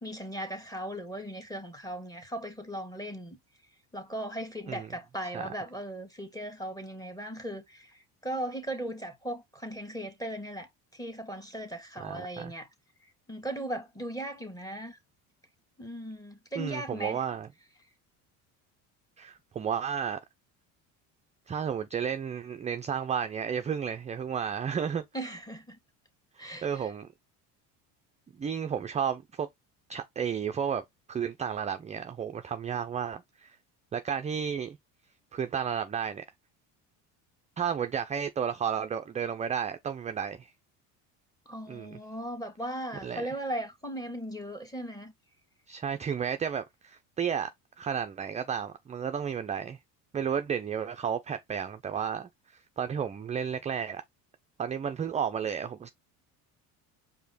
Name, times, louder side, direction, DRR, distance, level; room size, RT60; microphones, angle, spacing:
voice 1, 0.0-3.4 3.9-12.7 13.3-15.0 15.8-17.2 25.1-25.8 26.4-26.9 41.4-45.1, right 1 dB, 10° left, 1.6 m, -38 dB
voice 2, 12.0-12.5 16.6-17.5 19.2-20.2 21.5-25.0 26.6-27.1 28.4-29.5 29.9-30.8 31.1-33.6 33.9-34.8 35.3-36.2 37.6-40.5 41.7-42.0 43.0-43.3 45.7-47.5 47.8-49.8 50.1-54.0 54.6-55.9, right 7 dB, 20° right, 0.3 m, -32 dB
4.8 x 2.8 x 4.0 m
supercardioid pair, 90°, 41 cm